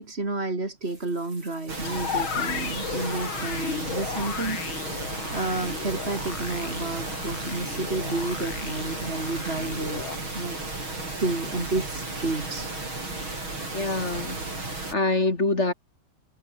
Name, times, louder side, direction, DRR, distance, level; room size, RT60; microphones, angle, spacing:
voice 1, 0.0-10.1 10.3-10.6 10.9-12.7, right 2 dB, 30° right, 3.5 m, -31 dB
sound 1, 0.8-10.3, right 2 dB, 65° right, 8.2 m, -51 dB
sound 2, 1.7-14.9, right 2 dB, 80° right, 8.3 m, -34 dB
sound 3, 1.8-10.2, left 9 dB, 80° left, 2.2 m, -35 dB
voice 2, 13.7-14.4 14.9-15.7, left 2 dB, 35° left, 3.2 m, -25 dB
omnidirectional pair, 2.2 m